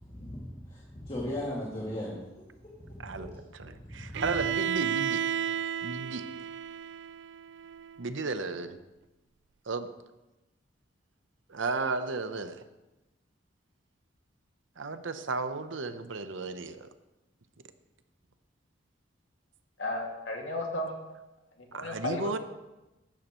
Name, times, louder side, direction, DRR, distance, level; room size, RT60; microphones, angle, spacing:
voice 1, 0.0-2.2 2.8-3.4 3.7-4.3, left 1 dB, 30° left, -5 dB, 2.3 m, -38 dB
voice 2, 3.0-5.2 5.8-6.2 8.0-8.8 9.7-9.9 11.5-12.6 14.8-16.9 21.7-22.4, right 3 dB, 80° right, 10 dB, 0.8 m, -34 dB
Bowed string instrument, 4.1-8.0, right 8 dB, 65° right, 0.3 m, -33 dB
voice 3, 19.8-21.0 21.7-22.4, left 1 dB, 85° left, 0 dB, 2.3 m, -34 dB
14.5 x 12.0 x 3.1 m, 1.0 s
head